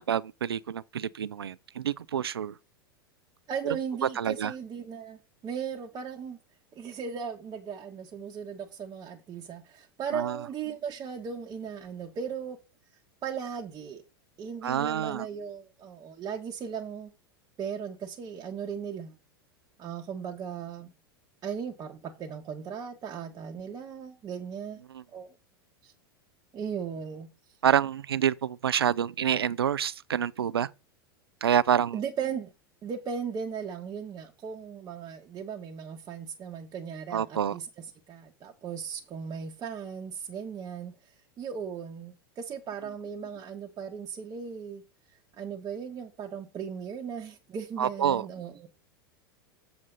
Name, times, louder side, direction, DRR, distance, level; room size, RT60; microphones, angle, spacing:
voice 1, 0.0-2.6 3.6-3.8 4.0-4.5 10.1-10.4 14.6-15.3 24.9-25.0 27.6-30.7 31.4-32.0 37.1-37.6 47.8-48.3, right 9 dB, 85° right, 0.5 m, -27 dB
voice 2, 3.5-6.4 6.7-12.6 13.2-14.0 14.4-17.1 17.6-19.1 19.8-20.9 21.4-24.8 25.1-25.3 25.8-25.9 26.5-27.3 31.9-32.5 32.8-44.8 45.4-48.7, right 7 dB, 30° right, 1.3 m, -37 dB
7.5 x 7.2 x 4.0 m
hypercardioid pair, 95°, 12 cm